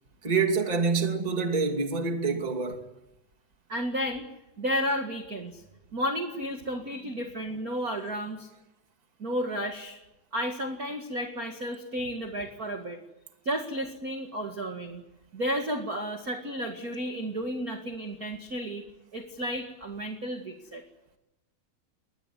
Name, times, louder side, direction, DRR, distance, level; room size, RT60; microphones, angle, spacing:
voice 1, 0.2-2.8, right 4 dB, 15° right, 1.8 m, -26 dB
voice 2, 3.7-4.2 4.6-5.6 5.9-8.5 9.2-10.0 10.3-13.0 13.4-15.0 15.3-18.8 19.1-20.8, equal, 35° right, 1.6 m, -32 dB
23.0 x 20.0 x 9.5 m
omnidirectional pair, 4.4 m